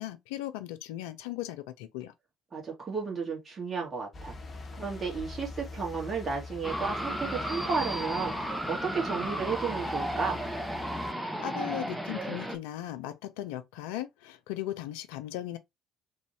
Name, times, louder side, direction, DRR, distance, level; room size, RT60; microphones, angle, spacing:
voice 1, 0.0-2.1 11.4-15.6, left 13 dB, 70° left, 0.4 m, -37 dB
voice 2, 2.5-4.4 4.8-10.4, right 5 dB, 35° right, 1.9 m, -33 dB
sound 1, 4.1-11.1, left 3 dB, 35° left, 0.7 m, -44 dB
sound 2, 6.6-12.6, equal, ahead, 0.8 m, -34 dB
3.4 x 2.6 x 3.2 m
figure-of-eight pair, 50°, 0 cm